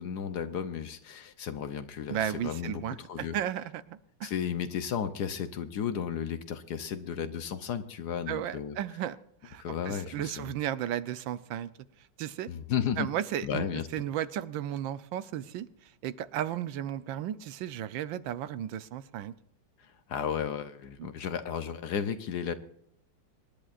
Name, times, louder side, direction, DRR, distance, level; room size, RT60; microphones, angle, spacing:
voice 1, 0.0-3.3 4.2-8.8 9.6-10.5 12.5-13.1 13.4-13.9 19.8-22.5, left 8 dB, 65° left, 11 dB, 1.2 m, -34 dB
voice 2, 2.1-4.3 8.3-9.2 9.4-11.7 12.2-12.5 13.0-19.3 21.0-21.1, right 11 dB, 75° right, 14 dB, 1.4 m, -34 dB
25.5 x 11.0 x 2.5 m, 0.73 s
omnidirectional pair, 2.2 m